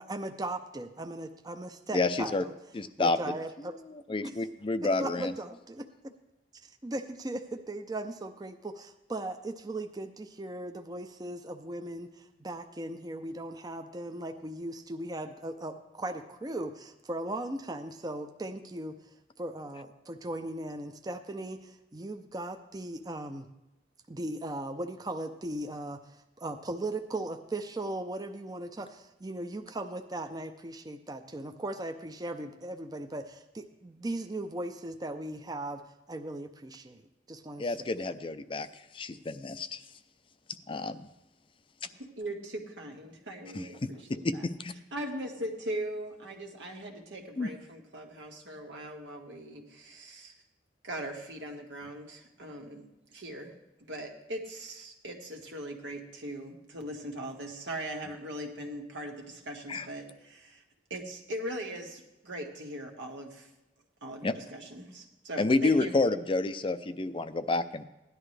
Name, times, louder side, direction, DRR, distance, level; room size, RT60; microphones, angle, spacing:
voice 1, 0.0-2.5 3.0-3.8 4.2-4.3 5.0-5.9 6.6-19.0 19.4-23.5 24.1-26.0 26.4-35.8 36.1-37.0 37.3-37.9, right 1 dB, 20° right, 6 dB, 0.6 m, -38 dB
voice 2, 1.9-2.4 2.7-3.4 3.9-5.3 37.6-38.7 38.9-39.8 40.7-41.1 43.5-43.7 44.2-44.7 47.4-47.5 59.7-59.9 64.2-64.4 65.4-67.8, left 3 dB, 30° left, 11 dB, 0.5 m, -29 dB
voice 3, 42.0-44.5 44.9-50.3 50.8-52.9 53.1-53.5 53.9-60.6 60.9-63.5 64.0-65.9, right 1 dB, 85° right, 1 dB, 1.8 m, -40 dB
16.5 x 11.0 x 3.3 m, 0.96 s
head